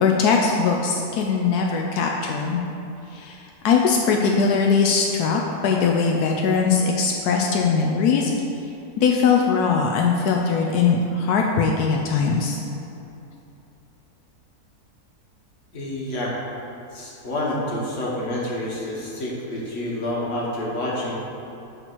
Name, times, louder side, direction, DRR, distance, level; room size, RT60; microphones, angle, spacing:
voice 1, 0.0-2.6 3.1-3.4 3.6-8.3 9.0-12.6, left 5 dB, 85° left, 0 dB, 1.1 m, -20 dB
voice 2, 15.7-16.4 16.9-21.1, left 1 dB, 55° left, -5 dB, 1.6 m, -28 dB
7.9 x 3.0 x 5.9 m, 2.8 s
omnidirectional pair, 1.6 m